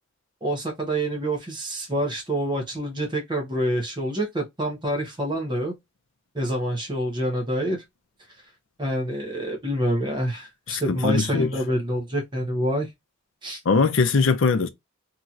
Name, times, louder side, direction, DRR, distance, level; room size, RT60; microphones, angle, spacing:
voice 1, 0.4-5.7 6.3-7.8 8.8-12.9 13.4-13.6, right 1 dB, 20° right, 0.8 m, -27 dB
voice 2, 10.7-11.5 13.7-14.7, left 4 dB, 65° left, 0.5 m, -21 dB
2.9 x 2.7 x 2.3 m
head